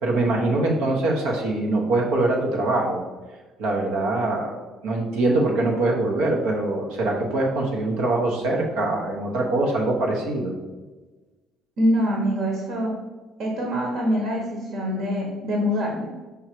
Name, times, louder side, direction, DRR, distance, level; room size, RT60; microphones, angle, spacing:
voice 1, 0.0-3.0 3.6-10.5, right 2 dB, 85° right, -1 dB, 1.2 m, -23 dB
voice 2, 11.8-13.0 13.4-16.1, equal, 60° right, -1 dB, 1.5 m, -24 dB
5.5 x 4.7 x 4.6 m, 1.3 s
cardioid pair, 140°, 0 cm